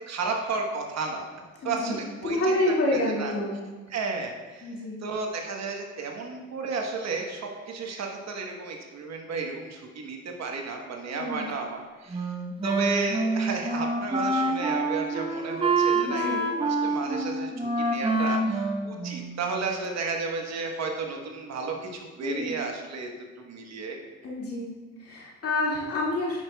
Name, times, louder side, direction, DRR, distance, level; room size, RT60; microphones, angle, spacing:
voice 1, 0.1-1.3 1.6-2.4 2.9-3.3 3.9-4.7 5.0-12.3 12.6-23.1 23.4-24.0, right 4 dB, 60° right, 2 dB, 1.1 m, -33 dB
voice 2, 1.6-3.6 4.6-5.0 11.1-11.6 15.9-16.4 22.2-22.6 24.2-26.4, left 1 dB, 50° left, -4 dB, 2.1 m, -29 dB
Wind instrument woodwind instrument, 12.1-19.6, right 2 dB, 20° right, 0.8 m, -27 dB
8.6 x 6.1 x 2.2 m, 1.4 s
cardioid pair, 90°, 30 cm